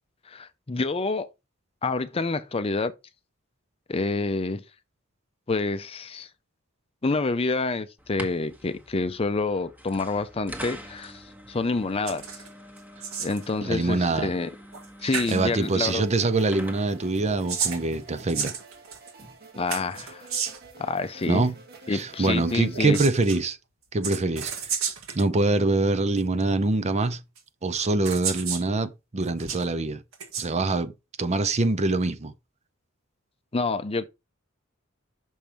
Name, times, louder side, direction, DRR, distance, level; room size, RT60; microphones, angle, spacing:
voice 1, 0.3-1.3 1.8-2.9 3.9-4.6 5.5-6.3 7.0-12.3 13.2-14.5 15.0-16.0 19.5-20.3 20.8-21.5 21.9-23.0 33.5-34.1, left 3 dB, 30° left, 0.5 m, -28 dB
sound 1, 8.0-18.3, right 1 dB, 10° right, 1.3 m, -45 dB
sound 2, 12.1-12.5 12.8-13.5 14.7-14.9 15.1-15.4 17.2-19.1 19.7-20.7 22.7-23.4 24.0-25.3 26.2-26.3 27.4-27.5 28.0-28.7 29.2-29.6 30.1-30.5, right 6 dB, 75° right, 1.8 m, -32 dB
voice 2, 13.6-14.3 15.3-18.5 21.3-21.5 21.9-23.6 23.9-24.5 25.1-27.2 27.6-30.0 30.4-30.9 31.2-32.3, right 2 dB, 30° right, 0.6 m, -24 dB
sound 3, 15.1-23.3, right 3 dB, 50° right, 1.5 m, -48 dB
6.3 x 5.3 x 4.3 m
head